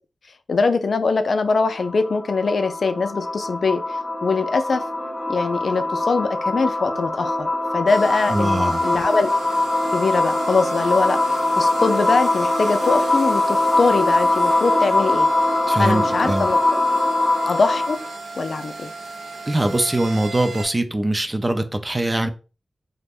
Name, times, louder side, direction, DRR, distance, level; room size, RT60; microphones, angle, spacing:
voice 1, 0.5-3.8 4.2-4.8 5.3-9.3 9.9-15.3 15.8-16.6 17.5-18.0 18.4-18.9, left 4 dB, 65° left, 9 dB, 0.3 m, -22 dB
sound 1, 1.4-18.1, left 2 dB, 20° left, 0.6 m, -22 dB
sound 2, 7.9-20.7, right 3 dB, 80° right, 0.5 m, -36 dB
voice 2, 8.3-8.8 15.7-16.5 19.5-22.3, right 1 dB, 25° right, 7 dB, 0.4 m, -22 dB
2.4 x 2.1 x 3.4 m, 0.34 s
cardioid pair, 65°, 0 cm